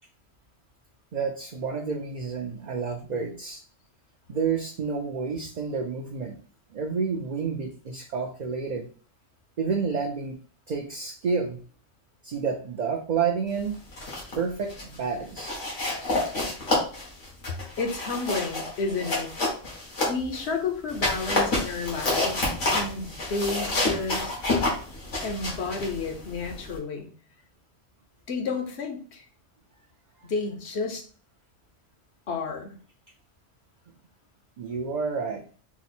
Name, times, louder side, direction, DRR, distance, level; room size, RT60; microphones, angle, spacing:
voice 1, 1.1-3.6 4.3-6.3 6.7-8.9 9.6-10.4 10.7-11.6 12.2-13.8 14.4-15.6 34.6-35.4, right 5 dB, 50° right, 2 dB, 0.5 m, -29 dB
sound 1, 13.7-14.4 14.7-15.0 15.4-20.5 20.9-26.8, left 2 dB, 85° left, 1.9 m, -29 dB
voice 2, 17.5-19.3 20.1-24.3 25.2-27.1 28.3-29.2 30.3-31.0 32.3-32.8, left 4 dB, 65° left, 4 dB, 1.1 m, -31 dB
4.8 x 2.0 x 4.3 m, 0.42 s
omnidirectional pair, 1.2 m